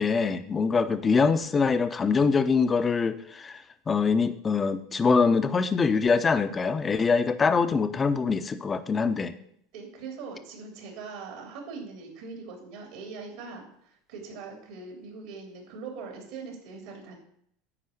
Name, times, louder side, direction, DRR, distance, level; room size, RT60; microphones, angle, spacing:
voice 1, 0.0-3.6 3.9-9.3, left 5 dB, 20° left, 10 dB, 0.8 m, -24 dB
voice 2, 9.7-17.2, right 4 dB, 70° right, 1 dB, 3.1 m, -41 dB
10.0 x 4.9 x 7.9 m, 0.69 s
supercardioid pair, 115°, 0 cm